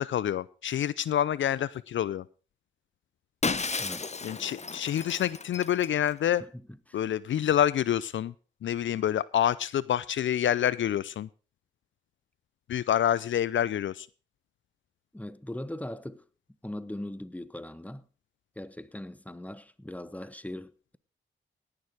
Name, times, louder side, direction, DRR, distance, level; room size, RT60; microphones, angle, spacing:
voice 1, 0.0-2.2 4.2-6.4 6.9-8.3 8.6-11.3 12.7-14.1, left 10 dB, 70° left, 0.5 m, -27 dB
Shatter, 3.4-6.1, left 4 dB, 35° left, 0.9 m, -33 dB
voice 2, 3.8-4.1 6.9-7.0 15.1-16.2 16.6-18.1 18.6-21.0, left 1 dB, 5° left, 1.1 m, -40 dB
17.5 x 6.7 x 4.9 m
supercardioid pair, 40°, 20 cm